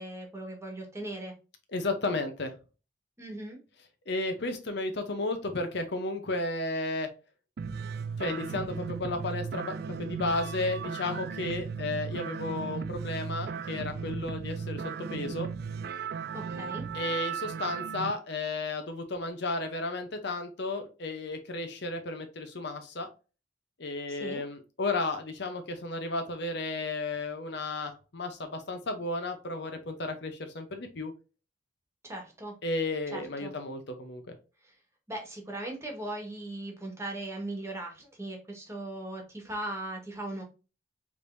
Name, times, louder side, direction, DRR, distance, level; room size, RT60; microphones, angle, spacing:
voice 1, 0.0-1.3 3.2-3.6 16.3-16.8 24.1-24.4 32.0-32.5 33.1-33.5 34.6-34.7 35.1-40.4, right 1 dB, 15° right, 2 dB, 1.4 m, -38 dB
voice 2, 1.7-2.5 4.1-7.1 8.2-15.5 16.9-23.1 23.8-31.1 32.6-34.3, left 2 dB, 60° left, 6 dB, 0.8 m, -33 dB
sound 1, 7.6-18.1, right 6 dB, 55° right, 0.3 m, -36 dB
5.0 x 3.4 x 2.6 m, 0.32 s
head